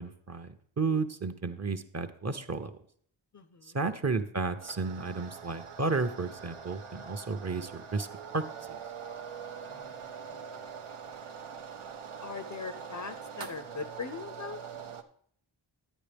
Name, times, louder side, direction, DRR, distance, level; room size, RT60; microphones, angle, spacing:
voice 1, 0.0-2.8 3.7-8.1 8.3-8.8, right 4 dB, 35° right, 8 dB, 0.7 m, -32 dB
voice 2, 3.3-3.8 9.7-10.7 12.2-14.6, left 5 dB, 40° left, 10 dB, 0.5 m, -41 dB
sound 1, 4.6-15.0, right 6 dB, 85° right, 0.7 m, -43 dB
10.0 x 9.0 x 3.4 m, 0.62 s
wide cardioid pair, 60°, 49 cm